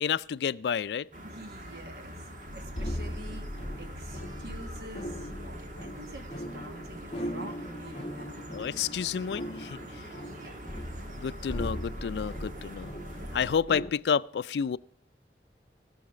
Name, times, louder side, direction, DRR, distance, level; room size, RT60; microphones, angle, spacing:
voice 1, 0.0-1.1 8.5-9.8 11.2-12.9 13.3-14.8, left 7 dB, 75° left, 0.3 m, -30 dB
sound 1, 1.1-13.5, right 1 dB, 45° right, 1.4 m, -45 dB
voice 2, 1.2-3.5 3.8-8.7 10.2-10.6, right 1 dB, 70° right, 1.6 m, -47 dB
sound 2, 2.5-13.9, equal, 35° left, 1.2 m, -39 dB
17.5 x 6.4 x 4.9 m
head